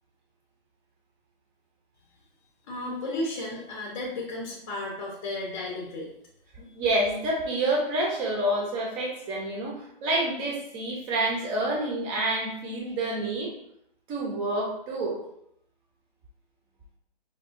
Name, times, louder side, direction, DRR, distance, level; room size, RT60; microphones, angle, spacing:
voice 1, 2.7-6.1, left 2 dB, 35° left, -2 dB, 0.7 m, -33 dB
voice 2, 6.5-13.5 14.1-15.2, right 1 dB, 15° right, -2 dB, 0.6 m, -28 dB
4.7 x 2.3 x 2.5 m, 0.73 s
hypercardioid pair, 140°, 29 cm